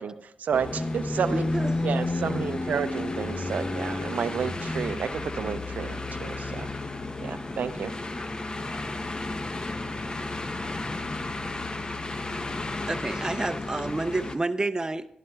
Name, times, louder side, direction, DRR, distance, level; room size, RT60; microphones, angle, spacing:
voice 1, 0.0-1.4 1.8-6.7 7.2-7.9, right 7 dB, 75° right, 12 dB, 0.5 m, -31 dB
sound 1, 0.5-14.4, left 2 dB, 35° left, 0.7 m, -32 dB
voice 2, 1.3-2.0 2.3-2.4 12.9-15.1, right 2 dB, 25° right, 9 dB, 0.5 m, -29 dB
voice 3, 9.8-9.9, left 3 dB, 70° left, 9 dB, 0.8 m, -54 dB
11.5 x 11.0 x 2.3 m, 0.81 s
cardioid pair, 45°, 3 cm